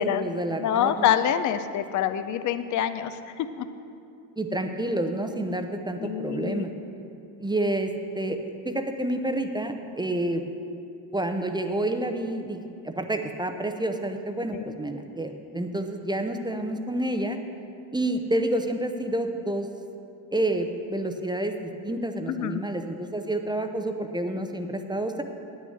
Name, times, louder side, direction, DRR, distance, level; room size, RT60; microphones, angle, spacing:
voice 1, 0.0-1.1 4.4-6.7 7.4-8.4 8.6-10.4 11.1-17.4 17.9-19.7 20.3-25.2, right 1 dB, 10° right, 6 dB, 0.7 m, -29 dB
voice 2, 0.6-3.7 6.0-6.7 14.5-14.6 22.3-22.6, left 10 dB, 40° left, 11 dB, 0.6 m, -26 dB
9.4 x 6.4 x 7.9 m, 2.7 s
supercardioid pair, 85°, 45 cm